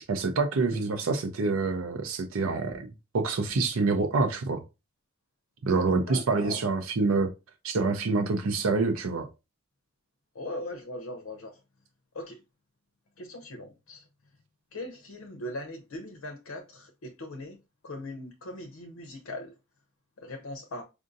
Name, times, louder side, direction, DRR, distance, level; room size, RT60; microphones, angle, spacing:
voice 1, 0.0-2.9 3.1-4.6 5.7-7.3 7.6-9.3, right 3 dB, 75° right, 0.6 m, -26 dB
voice 2, 0.5-0.9 6.1-6.6 10.3-11.6 12.1-12.4 13.2-14.1 14.7-17.6 17.8-19.5 20.2-20.8, left 1 dB, 80° left, 0.6 m, -40 dB
4.9 x 2.6 x 2.5 m
head